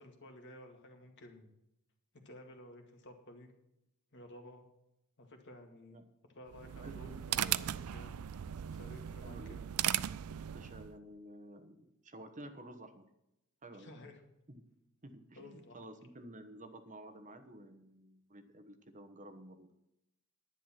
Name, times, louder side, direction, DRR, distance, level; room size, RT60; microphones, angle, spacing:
voice 1, 0.0-1.5 2.1-3.5 4.1-4.7 5.2-6.1 6.3-8.4 8.7-9.6 13.7-14.2 15.4-15.8, left 1 dB, 55° left, 4 dB, 2.1 m, -54 dB
sound 1, 6.5-11.0, right 11 dB, 80° right, 0.4 m, -37 dB
voice 2, 6.8-7.2 9.2-9.6 10.5-13.0 13.6-14.1 14.5-14.6 15.0-19.7, right 1 dB, 35° right, 8 dB, 1.1 m, -52 dB
11.0 x 9.9 x 5.8 m, 0.85 s
head